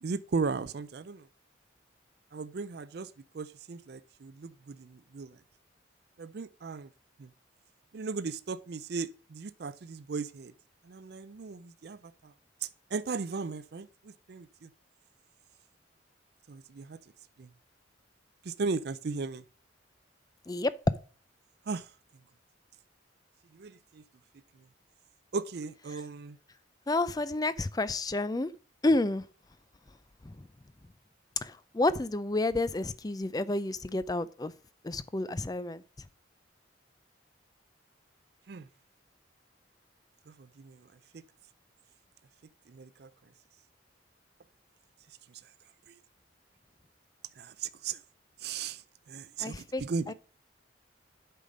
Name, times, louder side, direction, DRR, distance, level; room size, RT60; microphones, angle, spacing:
voice 1, 0.0-1.3 2.3-5.4 6.2-6.9 7.2-7.3 7.9-10.5 10.8-12.3 12.6-14.7 16.5-17.0 17.4-17.5 18.4-19.4 21.7-21.9 23.5-24.0 25.3-26.4 38.5-38.7 40.3-40.9 41.1-41.2 42.7-43.1 45.3-45.4 45.9-46.0 47.4-48.0 48.4-50.1, right 4 dB, 55° right, 0.4 m, -37 dB
voice 2, 26.9-28.5 28.8-29.3 30.2-30.3 31.4-34.5 34.8-35.8 49.4-50.1, left 2 dB, 20° left, 0.4 m, -30 dB
8.4 x 5.7 x 5.0 m
head